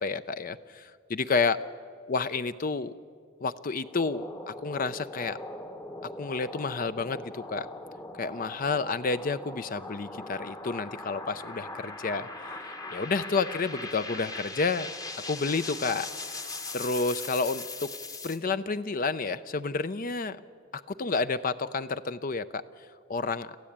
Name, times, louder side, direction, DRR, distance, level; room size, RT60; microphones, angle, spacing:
voice 1, 0.0-1.6 2.1-2.9 3.4-5.4 6.2-7.7 8.2-14.9 15.3-16.1 16.7-17.9 18.2-20.4 20.7-22.6 23.1-23.5, left 4 dB, 40° left, 13 dB, 0.5 m, -30 dB
sound 1, 3.8-18.4, left 2 dB, 15° left, 1.0 m, -40 dB
27.5 x 15.0 x 8.6 m, 2.1 s
head